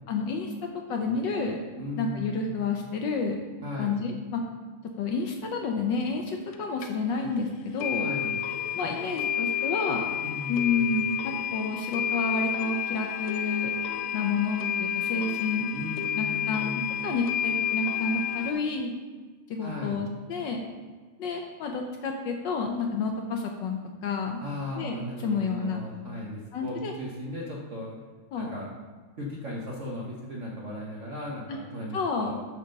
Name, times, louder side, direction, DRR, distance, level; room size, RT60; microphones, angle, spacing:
voice 1, 0.1-0.5 0.9-1.6 2.0-3.4 3.8-4.4 5.0-8.1 8.7-10.0 10.5-13.7 14.1-15.7 16.1-18.9 19.5-20.6 21.2-24.4 24.7-25.8 26.5-26.9 28.3-28.5 31.5-31.6 31.9-32.4, left 4 dB, 70° left, 2 dB, 1.2 m, -30 dB
voice 2, 1.8-2.4 3.6-4.0 8.0-8.4 10.2-11.0 15.7-16.9 19.6-20.1 24.4-28.0 28.4-28.7 29.2-32.4, left 1 dB, 55° right, -4 dB, 0.9 m, -37 dB
sound 1, 6.5-6.6 6.8-6.9 7.3-7.4 7.8-18.5, left 9 dB, 90° left, 1.6 m, -30 dB
7.4 x 4.0 x 6.4 m, 1.4 s
omnidirectional pair, 2.4 m